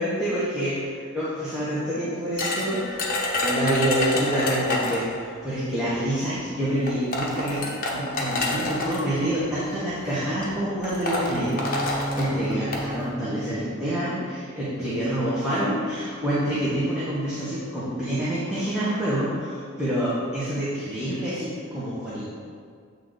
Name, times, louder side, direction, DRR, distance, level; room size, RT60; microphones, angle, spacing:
voice 1, 0.0-3.1 3.4-22.2, equal, 5° right, -11 dB, 1.0 m, -27 dB
sound 1, 2.4-5.1 6.2-6.3 6.9-9.0 9.9-10.1 10.4-10.5 10.8-12.9, left 2 dB, 45° left, 0.9 m, -27 dB
Bowed string instrument, 11.3-14.9, right 1 dB, 85° right, 1.5 m, -34 dB
7.8 x 3.3 x 3.9 m, 2.1 s
head